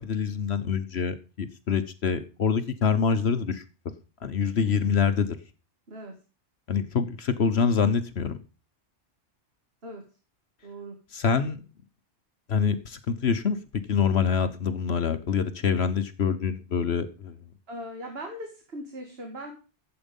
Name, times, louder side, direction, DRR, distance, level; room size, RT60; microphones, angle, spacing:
voice 1, 0.0-3.6 4.2-5.4 6.7-8.4 11.1-11.6 12.5-13.6 13.9-17.3, left 6 dB, 65° left, 10 dB, 1.2 m, -25 dB
voice 2, 4.6-4.9 5.9-6.1 9.8-10.0 10.6-11.0 17.7-19.5, equal, 55° right, 2 dB, 2.4 m, -39 dB
13.0 x 8.1 x 5.3 m, 0.34 s
omnidirectional pair, 1.2 m